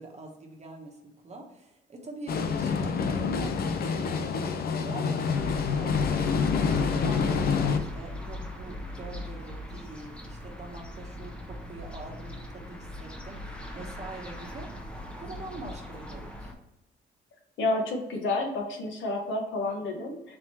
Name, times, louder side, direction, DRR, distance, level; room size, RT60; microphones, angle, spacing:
voice 1, 0.0-4.4 4.7-14.7 15.2-16.5, right 1 dB, 35° right, 1 dB, 0.9 m, -44 dB
sound 1, 2.3-7.8, left 5 dB, 50° left, 0.5 m, -27 dB
sound 2, 5.3-16.5, left 1 dB, 5° left, 0.7 m, -39 dB
voice 2, 17.6-20.4, left 2 dB, 70° left, 2 dB, 1.0 m, -30 dB
3.5 x 2.9 x 4.3 m, 0.92 s
cardioid pair, 90°, 20 cm